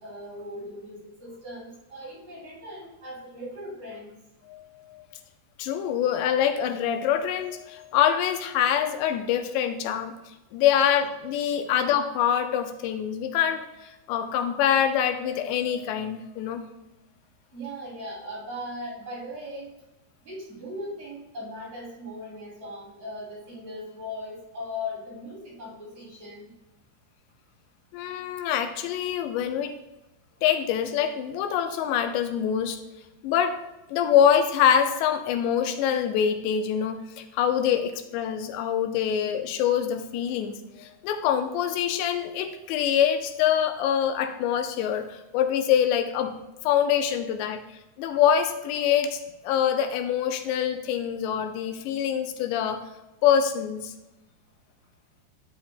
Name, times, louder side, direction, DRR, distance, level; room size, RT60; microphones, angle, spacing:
voice 1, 0.0-4.1 17.5-19.8 20.2-26.5, left 1 dB, 30° right, -6 dB, 3.2 m, -38 dB
voice 2, 5.6-10.2 10.5-13.7 14.1-16.7 27.9-29.7 30.4-32.8 33.2-33.6 33.9-46.4 46.6-47.6 48.0-52.8 53.2-53.9, left 9 dB, 85° left, 7 dB, 2.9 m, -25 dB
13.0 x 7.4 x 2.2 m, 0.97 s
omnidirectional pair, 4.9 m